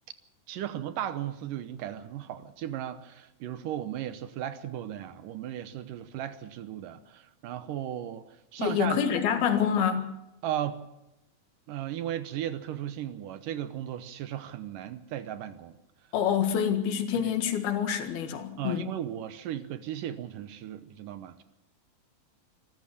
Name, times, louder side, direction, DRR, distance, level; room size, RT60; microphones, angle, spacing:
voice 1, 0.5-9.0 10.4-10.8 11.7-15.8 17.2-17.3 18.6-21.4, right 11 dB, 70° right, 2.3 m, -36 dB
voice 2, 8.6-10.1 16.1-18.9, left 8 dB, 85° left, 3.7 m, -27 dB
26.0 x 14.0 x 7.1 m
omnidirectional pair, 4.3 m